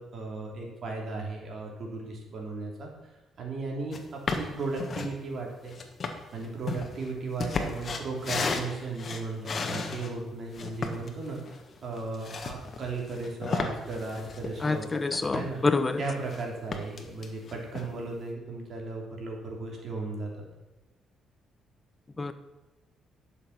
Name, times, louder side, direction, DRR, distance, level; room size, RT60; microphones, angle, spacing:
voice 1, 0.0-2.9 3.4-5.7 6.3-14.8 15.3-15.6 16.0-20.4, right 3 dB, 55° right, 0 dB, 3.2 m, -36 dB
sound 1, 3.9-4.0 4.3-5.1 5.7-10.1 10.5-15.8 16.0-16.4 16.7-17.9, left 4 dB, 45° left, 1.5 m, -34 dB
voice 2, 14.6-16.0 22.2-22.3, left 3 dB, 25° left, 10 dB, 0.9 m, -27 dB
11.0 x 6.9 x 5.9 m, 1.1 s
cardioid pair, 90°, 0 cm